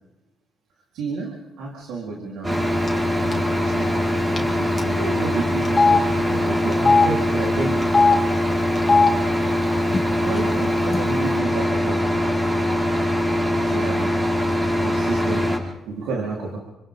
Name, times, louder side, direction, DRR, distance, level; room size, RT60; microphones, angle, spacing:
voice 1, 0.9-2.8 3.2-7.9 10.2-12.0 13.6-14.3 14.8-15.6 15.9-16.6, right 3 dB, 90° right, -2 dB, 4.1 m, -31 dB
sound 1, 2.4-15.6, left 1 dB, 20° right, 5.1 m, -22 dB
Telephone, 2.9-3.1 3.3-3.5 4.4-4.5 4.8-4.9 5.6-6.0 6.7-7.0 7.8-8.1 8.8-9.1 9.9-10.0 10.3-11.0, left 4 dB, 25° left, 2.9 m, -17 dB
29.0 x 25.5 x 3.9 m, 0.98 s
cardioid pair, 90°, 0 cm